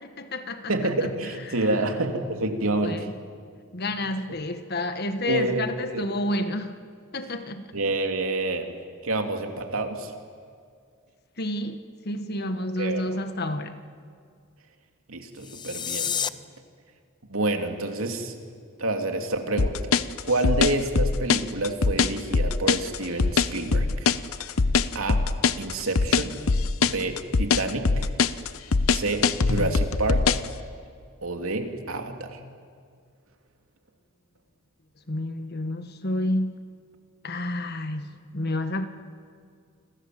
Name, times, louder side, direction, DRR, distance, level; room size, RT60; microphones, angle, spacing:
voice 1, 0.0-0.8 1.0-1.1 1.5-1.7 2.8-3.1 3.7-6.8 7.1-7.7 11.4-13.8 35.1-36.6 37.2-38.9, left 1 dB, 50° left, 9 dB, 1.7 m, -30 dB
voice 2, 0.7-3.1 5.3-5.7 5.9-6.1 7.7-8.7 9.0-10.1 12.8-13.2 15.1-16.2 17.3-18.3 18.8-19.9 20.3-24.1 24.9-25.3 25.6-26.4 26.8-28.1 28.9-30.5 31.2-32.4, right 2 dB, 80° right, 5 dB, 2.9 m, -28 dB
sound 1, 15.3-16.3, left 8 dB, 20° left, 0.6 m, -29 dB
sound 2, 19.6-30.5, left 4 dB, 85° left, 0.9 m, -22 dB
29.0 x 26.5 x 7.8 m, 2.2 s
head